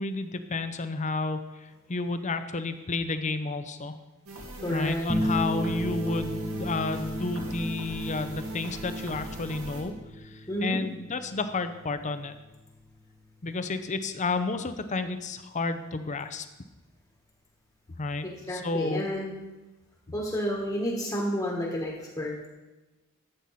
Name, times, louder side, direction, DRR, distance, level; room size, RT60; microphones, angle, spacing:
voice 1, 0.0-4.0 4.7-12.3 13.4-16.5 18.0-19.1, left 3 dB, 35° left, 10 dB, 0.7 m, -31 dB
sound 1, 4.3-9.8, right 1 dB, 70° right, 2.5 m, -40 dB
voice 2, 4.6-5.0 10.5-10.8 18.2-19.3 20.1-22.3, equal, 15° left, -2 dB, 1.5 m, -30 dB
sound 2, 5.1-13.6, equal, 15° right, 1.2 m, -35 dB
13.0 x 7.9 x 4.2 m, 1.1 s
head